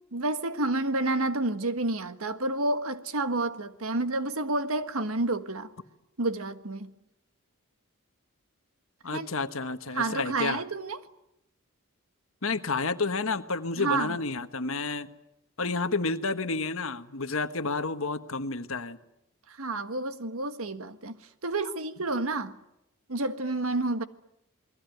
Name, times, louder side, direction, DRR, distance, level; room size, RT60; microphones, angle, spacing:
voice 1, 0.1-5.7 6.2-6.9 9.1-9.3 9.9-11.0 13.8-14.2 19.5-21.2 21.4-22.6 23.1-24.0, right 2 dB, 80° right, 1.6 m, -29 dB
voice 2, 9.0-10.6 12.4-15.1 15.6-19.0, left 3 dB, 70° left, 1.4 m, -30 dB
28.5 x 21.5 x 9.4 m
head